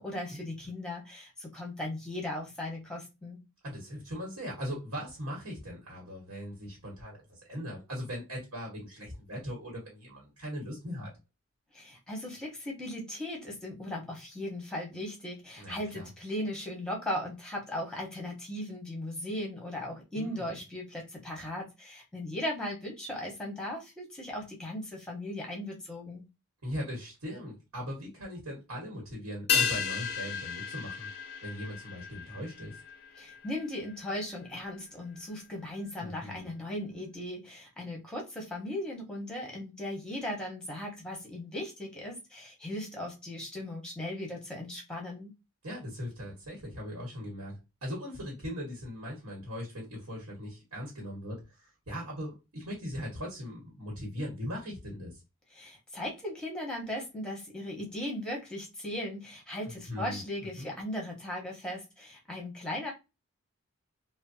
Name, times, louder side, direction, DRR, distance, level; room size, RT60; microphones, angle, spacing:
voice 1, 0.0-3.4 11.7-26.2 33.2-45.3 55.5-62.9, left 1 dB, 5° left, 0.8 m, -37 dB
voice 2, 3.6-11.1 15.6-16.1 20.1-20.6 26.6-31.1 31.4-32.8 36.0-36.5 45.6-55.2 59.6-60.2 60.6-60.7, equal, 85° right, 1.3 m, -39 dB
sound 1, 29.5-34.2 34.5-34.6, left 7 dB, 45° left, 0.4 m, -33 dB
3.1 x 2.1 x 2.6 m
head